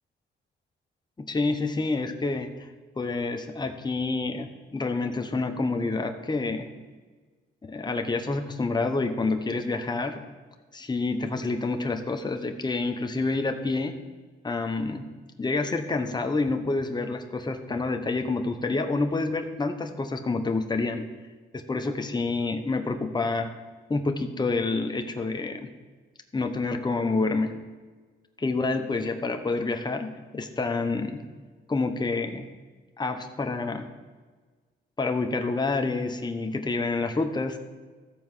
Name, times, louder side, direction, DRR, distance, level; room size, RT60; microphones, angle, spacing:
voice 1, 1.2-2.7 3.0-6.7 7.6-10.2 10.7-13.9 14.4-15.1 15.4-21.1 21.5-23.5 23.9-25.7 26.3-27.6 28.4-31.2 31.7-32.5 33.0-33.9 35.0-37.6, left 3 dB, 20° left, 5 dB, 1.0 m, -28 dB
13.5 x 4.6 x 7.6 m, 1.4 s
cardioid pair, 85°, 21 cm